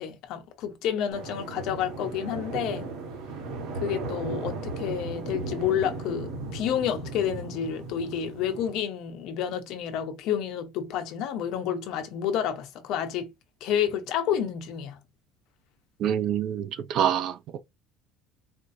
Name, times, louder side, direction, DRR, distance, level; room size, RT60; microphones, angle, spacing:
voice 1, 0.0-2.8 3.8-13.3 13.6-15.0, left 9 dB, 50° left, 0.8 m, -30 dB
sound 1, 1.1-8.8, right 3 dB, 60° right, 1.3 m, -36 dB
voice 2, 16.0-17.6, right 9 dB, 40° right, 0.4 m, -26 dB
4.4 x 2.4 x 2.6 m
cardioid pair, 175°, 0 cm